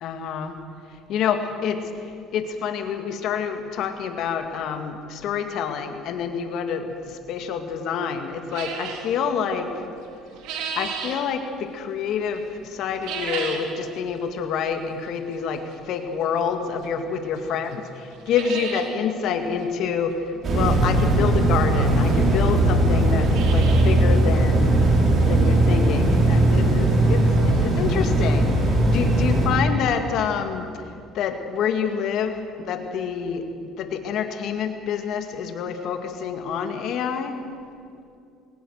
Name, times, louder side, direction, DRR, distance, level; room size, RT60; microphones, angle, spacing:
voice 1, 0.0-0.6 1.1-1.9 2.3-9.7 10.8-17.7 18.3-20.2 20.5-24.8 25.3-28.6 28.8-30.7 31.1-32.4 32.7-33.5 33.8-37.3, left 7 dB, 65° left, 6 dB, 2.4 m, -27 dB
sound 1, 8.5-9.1 10.0-11.2 12.9-13.7 14.1-14.2 15.0-15.1 16.8-16.9 17.4-17.5 17.7-17.8 18.1-18.9 19.3-19.4 19.6-19.7 21.2-21.3 22.1-22.2 22.4-22.5 23.0-24.0 24.3-24.4 24.9-25.0 25.5-25.6 27.3-27.4 27.5-27.6 28.1-28.2, right 6 dB, 80° right, 3.2 m, -33 dB
sound 2, 20.4-29.5, right 1 dB, 40° right, 5.9 m, -19 dB
22.0 x 19.0 x 6.7 m, 2.4 s
cardioid pair, 105°, 0 cm